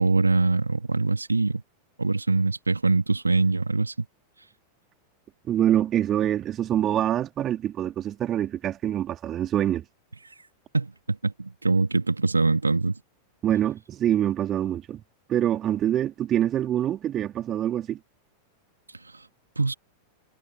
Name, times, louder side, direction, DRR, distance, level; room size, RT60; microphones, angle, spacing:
voice 1, 0.0-1.6 2.0-4.1 10.7-13.0 19.6-19.7, right 3 dB, 80° right, 3.7 m, -23 dB
voice 2, 5.5-9.8 13.4-15.0 15.3-18.0, right 11 dB, 30° right, 3.7 m, -25 dB
figure-of-eight pair, 90°, 0 cm